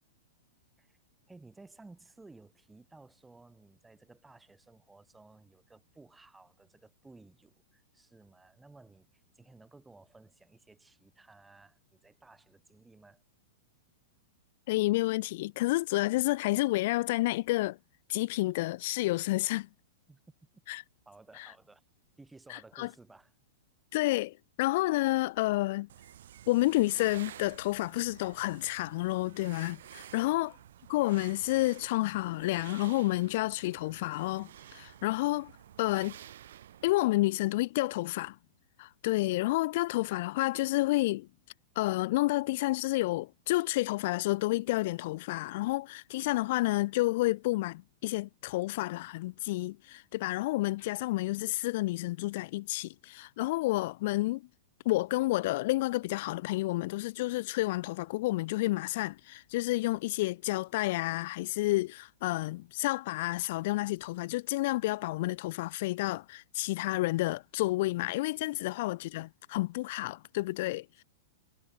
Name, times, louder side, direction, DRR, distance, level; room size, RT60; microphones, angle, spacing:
voice 1, 1.3-13.2 20.1-20.2 21.1-21.8 22.2-23.3 30.1-30.4, right 3 dB, 10° right, 5.8 m, -56 dB
voice 2, 14.7-17.8 18.1-19.7 20.7-20.8 21.4-21.5 22.5-22.9 23.9-25.9 26.5-30.5 30.9-35.5 35.8-36.2 36.8-38.4 38.8-41.3 41.8-54.4 54.9-71.0, left 19 dB, 55° left, 0.3 m, -30 dB
sound 1, 25.9-37.0, right 11 dB, 65° right, 2.3 m, -51 dB
figure-of-eight pair, 100°, 0 cm